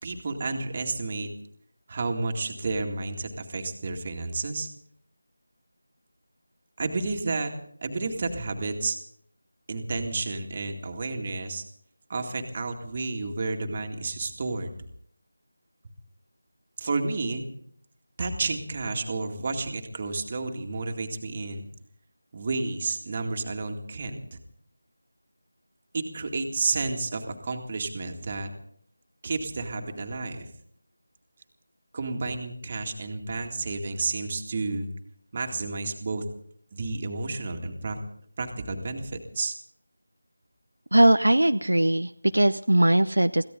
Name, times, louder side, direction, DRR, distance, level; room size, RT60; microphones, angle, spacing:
voice 1, 0.0-1.3 1.9-4.7 6.8-7.5 7.8-9.0 9.7-11.6 12.1-14.7 16.8-17.4 18.2-21.7 22.3-24.4 25.9-28.5 29.2-30.5 31.9-34.9 35.3-36.2 36.7-38.0 38.4-39.6, right 3 dB, 30° right, 4 dB, 2.1 m, -31 dB
voice 2, 40.9-43.4, right 1 dB, 80° right, 9 dB, 0.7 m, -20 dB
23.0 x 16.5 x 3.8 m, 0.65 s
figure-of-eight pair, 165°, 0 cm